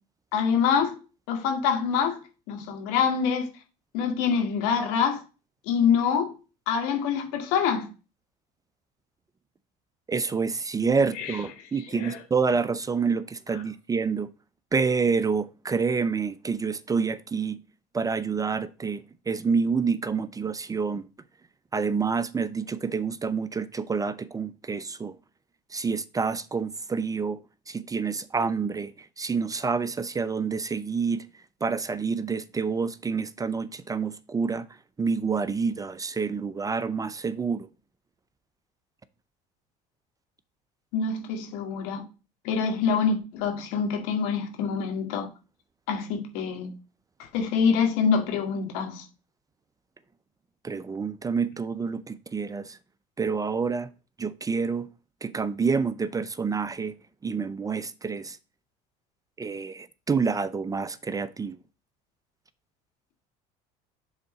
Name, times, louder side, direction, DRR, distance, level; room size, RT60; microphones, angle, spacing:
voice 1, 0.3-0.9 1.3-2.2 2.5-3.5 3.9-5.2 5.7-6.3 6.7-7.9 11.2-11.4 11.9-12.2 40.9-42.0 42.4-45.3 45.9-46.7 47.2-49.0, left 6 dB, 80° left, 2.0 m, -25 dB
voice 2, 10.1-14.3 14.7-17.6 17.9-21.1 21.7-25.1 25.7-27.4 27.7-28.9 29.2-31.3 31.6-34.7 35.0-37.7 50.6-52.8 53.2-53.9 54.2-54.9 55.2-56.9 57.2-58.4 59.4-61.6, right 5 dB, 20° right, 0.5 m, -28 dB
7.2 x 3.8 x 5.0 m
supercardioid pair, 95°, 18 cm